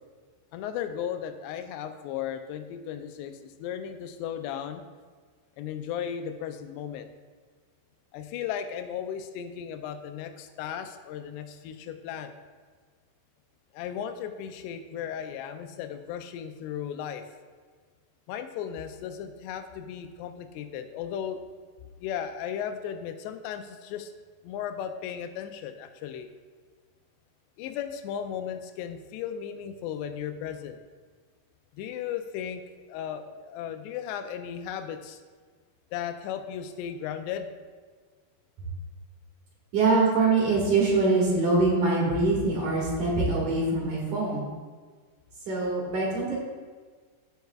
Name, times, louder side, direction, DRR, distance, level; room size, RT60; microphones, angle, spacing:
voice 1, 0.5-4.8 5.6-7.1 8.1-12.3 13.7-17.2 18.3-21.4 22.0-24.1 24.4-26.3 27.6-30.8 31.7-32.6 32.9-35.2 35.9-37.5, left 9 dB, 85° left, 8 dB, 2.7 m, -35 dB
voice 2, 39.7-44.4 45.5-46.4, right 3 dB, 55° right, -4 dB, 3.0 m, -24 dB
15.0 x 6.7 x 2.4 m, 1.5 s
omnidirectional pair, 4.8 m